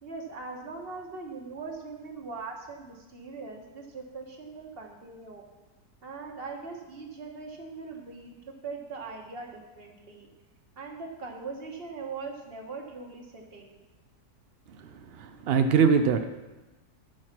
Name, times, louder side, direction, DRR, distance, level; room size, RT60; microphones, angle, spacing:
voice 1, 0.0-5.4 6.0-10.3 10.8-13.7, right 4 dB, 40° right, 2 dB, 1.4 m, -41 dB
voice 2, 14.8-16.3, right 6 dB, 70° right, 8 dB, 0.5 m, -23 dB
13.5 x 4.7 x 5.9 m, 1.1 s
omnidirectional pair, 1.7 m